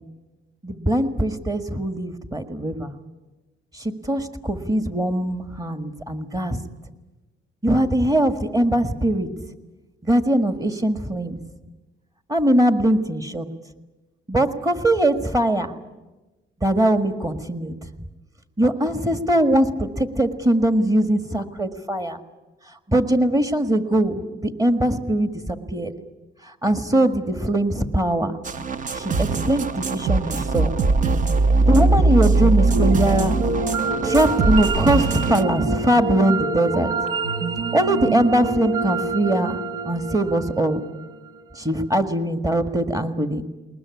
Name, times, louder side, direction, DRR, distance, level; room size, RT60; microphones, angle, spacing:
voice 1, 0.6-3.0 3.7-6.6 7.6-9.3 10.0-11.4 12.3-13.5 14.3-15.7 16.6-17.8 18.6-22.2 22.9-25.9 26.6-28.4 28.9-30.7 31.7-33.4 34.0-36.9 37.7-40.8 41.5-43.4, right 1 dB, 15° right, 8 dB, 1.7 m, -21 dB
sound 1, 28.4-35.4, right 3 dB, 40° right, 0.8 m, -21 dB
sound 2, 32.2-41.4, right 4 dB, 85° right, 1.5 m, -27 dB
20.5 x 20.5 x 9.7 m, 1.1 s
cardioid pair, 115°, 20 cm